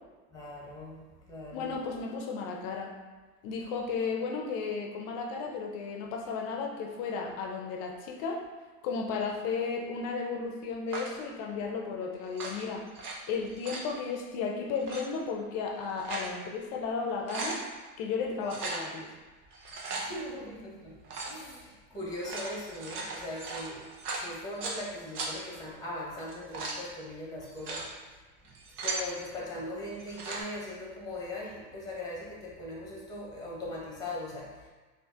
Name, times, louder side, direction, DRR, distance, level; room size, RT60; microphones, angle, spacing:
voice 1, 0.3-1.8 19.8-28.5 28.8-34.7, left 1 dB, 10° left, -3 dB, 0.9 m, -40 dB
voice 2, 1.5-2.9 3.4-8.4 8.8-12.8 13.3-17.6 18.0-19.1, left 5 dB, 40° left, 1 dB, 0.5 m, -34 dB
sound 1, 10.9-11.2 12.2-13.1 13.5-13.9 14.7-15.0 15.7-16.3 16.7-16.8 17.1-17.6 18.4-18.8 19.5-20.1 21.0-21.4 22.1-24.8 25.1-25.3 26.2-26.8 27.4-27.9 28.4-29.1 29.9-30.4, right 3 dB, 80° right, 0.9 m, -37 dB
4.2 x 2.5 x 2.4 m, 1.3 s
hypercardioid pair, 115°, 46 cm